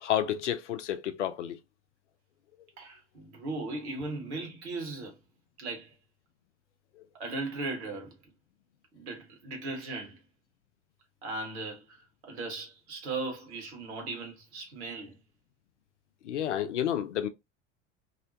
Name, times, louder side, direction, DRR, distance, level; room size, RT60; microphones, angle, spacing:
voice 1, 0.0-1.6 16.2-17.3, left 10 dB, 70° left, 0.5 m, -30 dB
voice 2, 2.8-5.2 5.6-5.9 7.1-8.2 8.9-10.2 11.2-15.2, right 3 dB, 60° right, 1.2 m, -38 dB
2.7 x 2.1 x 2.5 m
figure-of-eight pair, 75°, 37 cm